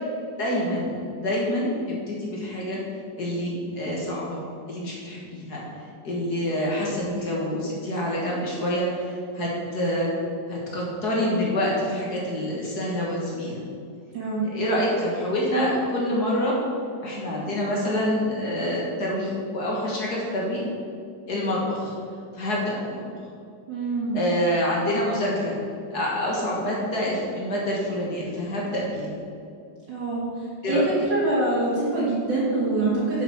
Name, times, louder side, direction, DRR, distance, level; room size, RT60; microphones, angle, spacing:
voice 1, 0.4-1.7 2.1-2.8 3.2-4.4 4.7-5.6 6.0-10.1 10.5-13.6 14.5-16.5 17.0-20.6 21.3-21.9 22.3-23.0 24.1-25.6 25.9-29.2 30.6-30.9, left 1 dB, 55° left, -4 dB, 2.3 m, -26 dB
voice 2, 14.1-14.5 23.7-24.2 29.9-33.2, right 2 dB, 70° right, -8 dB, 2.4 m, -25 dB
7.2 x 7.2 x 6.1 m, 2.4 s
omnidirectional pair, 2.0 m